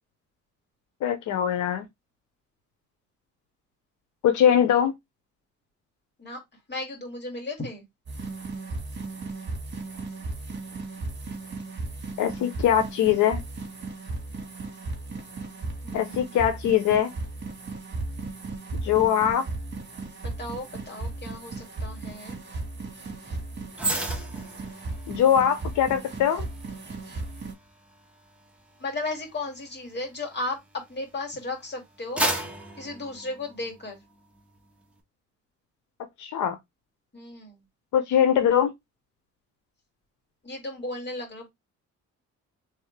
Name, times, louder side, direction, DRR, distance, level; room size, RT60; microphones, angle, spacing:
voice 1, 1.0-1.8 4.2-4.9 12.2-13.4 15.9-17.1 18.8-19.4 25.1-26.5 36.2-36.6 37.9-38.7, left 9 dB, 75° left, 0.7 m, -22 dB
voice 2, 6.7-7.8 15.8-16.3 20.4-22.4 28.8-32.2 32.8-34.0 37.1-37.6 40.4-41.5, left 2 dB, 35° left, 2.5 m, -35 dB
sound 1, 8.1-27.5, right 3 dB, 40° right, 2.2 m, -36 dB
sound 2, 23.7-31.2 31.6-34.0 34.4-34.6, right 1 dB, 5° right, 1.3 m, -35 dB
3.5 x 3.5 x 3.2 m
cardioid pair, 90°, 30 cm